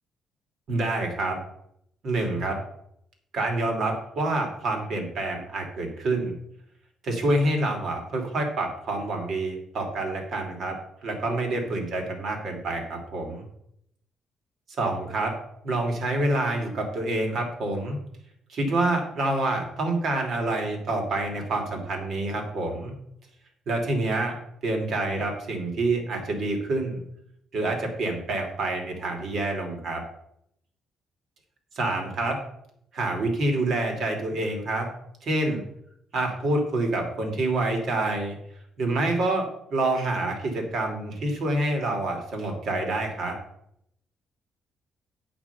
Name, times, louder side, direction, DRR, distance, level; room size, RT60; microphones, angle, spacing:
voice 1, 0.7-1.4 2.0-2.6 3.3-6.3 7.0-13.4 14.8-15.3 15.6-18.0 18.5-22.9 23.7-24.4 24.6-27.0 27.5-30.0 31.7-32.4 32.9-34.9 35.2-35.6 36.1-38.3 38.8-43.4, right 2 dB, 65° right, 3 dB, 2.9 m, -27 dB
9.0 x 6.0 x 6.9 m, 0.74 s
cardioid pair, 90°, 0 cm